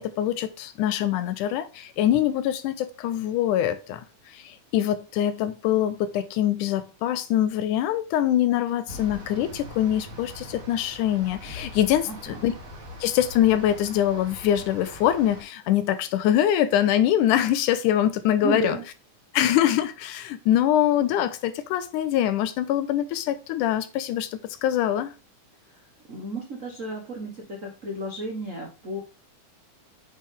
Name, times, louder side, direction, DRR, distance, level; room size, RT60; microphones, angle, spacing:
voice 1, 0.0-4.0 4.3-12.5 13.0-18.8 19.3-25.1, left 11 dB, 85° left, 2.2 m, -24 dB
sound 1, 8.9-15.4, left 1 dB, 40° right, 1.3 m, -42 dB
voice 2, 12.1-12.4 18.4-18.8 25.7-25.8 26.1-29.0, right 1 dB, 75° right, 0.7 m, -33 dB
7.8 x 4.2 x 3.3 m
omnidirectional pair, 3.6 m